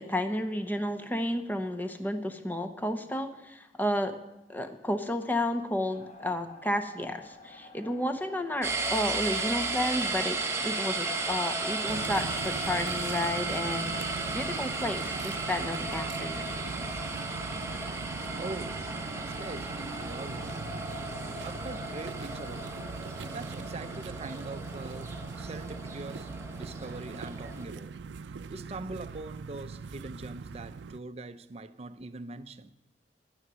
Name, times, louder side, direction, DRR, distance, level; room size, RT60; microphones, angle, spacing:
voice 1, 0.0-4.2 4.5-16.5, left 1 dB, 10° left, 0.7 m, -32 dB
sound 1, 5.9-14.8, left 2 dB, 40° left, 1.3 m, -53 dB
sound 2, 8.6-27.6, right 3 dB, 15° right, 1.0 m, -35 dB
sound 3, 11.9-31.0, right 5 dB, 85° right, 0.4 m, -41 dB
voice 2, 18.4-20.6 21.4-22.8 23.3-27.9 28.2-32.7, right 3 dB, 35° right, 0.5 m, -42 dB
10.5 x 9.7 x 6.2 m
head